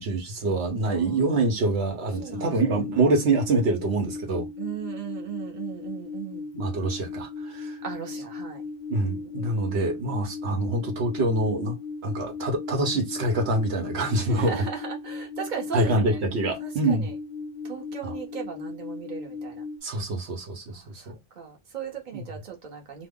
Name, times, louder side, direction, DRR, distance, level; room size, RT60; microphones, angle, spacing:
voice 1, 0.0-4.5 6.5-7.8 8.9-11.8 12.0-14.7 15.7-17.1 18.0-18.1 19.8-21.2 22.1-22.2, right 2 dB, 85° right, 1.2 m, -25 dB
sound 1, 2.2-19.8, left 4 dB, 85° left, 0.8 m, -37 dB
voice 2, 2.2-2.5 4.6-6.4 7.8-8.6 9.0-9.8 14.3-16.2 16.6-17.1 17.6-19.6 20.7-23.1, right 8 dB, 50° right, 1.1 m, -37 dB
3.0 x 2.1 x 3.6 m
omnidirectional pair, 1.1 m